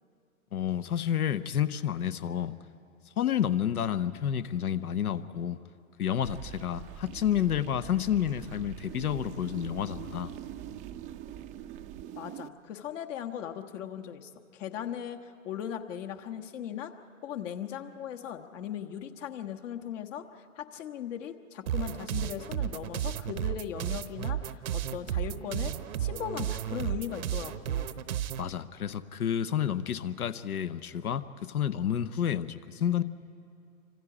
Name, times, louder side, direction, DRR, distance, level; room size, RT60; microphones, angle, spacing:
voice 1, 0.5-2.5 3.2-5.6 6.0-10.3 28.4-33.0, left 9 dB, 80° left, 14 dB, 0.9 m, -30 dB
sound 1, 6.2-12.5, right 11 dB, 20° right, 0.4 m, -43 dB
voice 2, 12.2-16.9 17.2-25.7 26.0-28.0, left 9 dB, 55° left, 5 dB, 1.5 m, -38 dB
sound 2, 21.7-28.5, right 11 dB, 75° right, 0.9 m, -33 dB
28.5 x 25.5 x 5.0 m, 2.4 s
hypercardioid pair, 115°, 43 cm